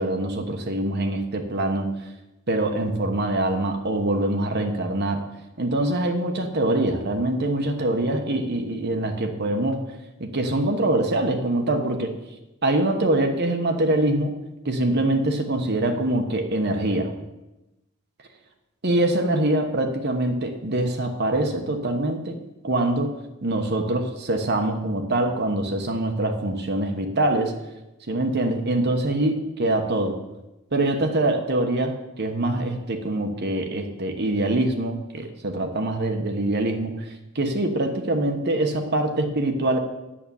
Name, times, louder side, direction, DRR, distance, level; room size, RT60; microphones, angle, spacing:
voice 1, 0.0-1.9 2.5-5.2 5.6-9.8 10.2-12.1 12.6-14.4 14.6-17.1 18.8-22.4 22.6-23.2 23.4-27.5 28.1-30.2 30.7-39.8, right 1 dB, 50° right, 4 dB, 1.2 m, -24 dB
8.7 x 8.1 x 7.1 m, 0.97 s
head